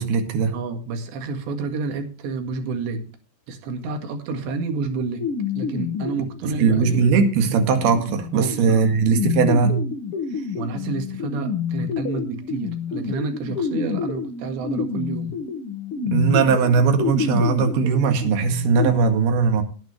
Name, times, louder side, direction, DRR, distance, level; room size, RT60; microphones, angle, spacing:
voice 1, 0.0-0.5 6.4-9.8 16.1-19.6, right 5 dB, 70° right, 5 dB, 3.7 m, -19 dB
voice 2, 0.5-3.1 3.5-5.3 5.6-7.1 8.3-8.8 10.6-15.3, right 4 dB, 85° right, 5 dB, 4.2 m, -29 dB
sound 1, 5.2-18.9, left 6 dB, 50° left, 1.7 m, -29 dB
18.5 x 9.0 x 3.3 m, 0.37 s
omnidirectional pair, 4.9 m